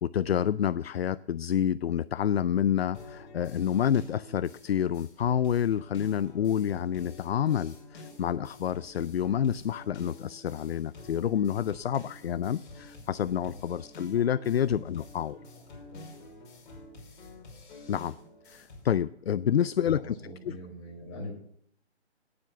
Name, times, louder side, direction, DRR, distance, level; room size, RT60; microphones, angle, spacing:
voice 1, 0.0-15.4 17.9-18.2 18.5-20.1 20.4-20.6, left 9 dB, 60° left, 17 dB, 0.5 m, -28 dB
sound 1, 2.9-18.9, left 2 dB, 45° left, 5.8 m, -49 dB
voice 2, 15.9-16.3 19.5-21.4, left 1 dB, 30° left, -1 dB, 6.1 m, -43 dB
17.5 x 7.7 x 6.9 m, 0.67 s
hypercardioid pair, 160°, 34 cm